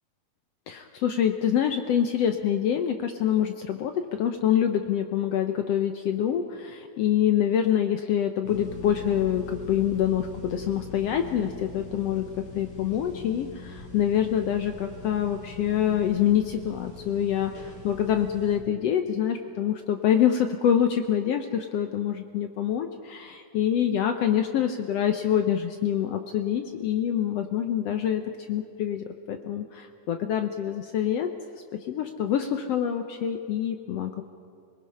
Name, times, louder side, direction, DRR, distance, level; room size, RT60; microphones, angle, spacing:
voice 1, 0.7-12.2 12.6-28.2 28.5-31.3 31.9-34.2, left 9 dB, 70° left, 6 dB, 1.7 m, -26 dB
sound 1, 8.4-18.6, left 4 dB, 85° left, 6.8 m, -41 dB
26.5 x 19.5 x 5.5 m, 2.4 s
omnidirectional pair, 3.5 m